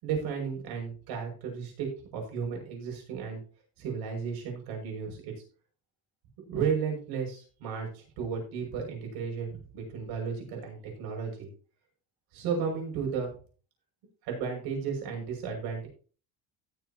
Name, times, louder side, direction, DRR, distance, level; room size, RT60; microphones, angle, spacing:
voice 1, 0.0-3.4 3.8-5.3 6.5-11.5 12.3-13.3 14.2-15.9, right 6 dB, 90° right, 1 dB, 6.4 m, -34 dB
17.5 x 7.5 x 2.9 m, 0.39 s
cardioid pair, 170°, 37 cm